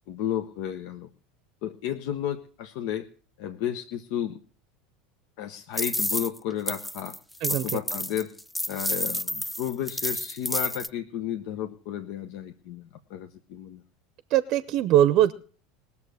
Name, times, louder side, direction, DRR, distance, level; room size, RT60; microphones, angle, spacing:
voice 1, 0.1-1.1 1.6-3.1 3.4-4.4 5.4-7.2 7.5-8.3 8.7-13.8, left 10 dB, 65° left, 6 dB, 0.9 m, -32 dB
sound 1, 5.8-6.4 6.7-10.9, left 1 dB, 5° left, 0.5 m, -30 dB
voice 2, 7.4-7.8 14.3-15.3, right 12 dB, 55° right, 16 dB, 0.7 m, -21 dB
19.0 x 7.0 x 6.4 m, 0.43 s
hypercardioid pair, 90°, 0 cm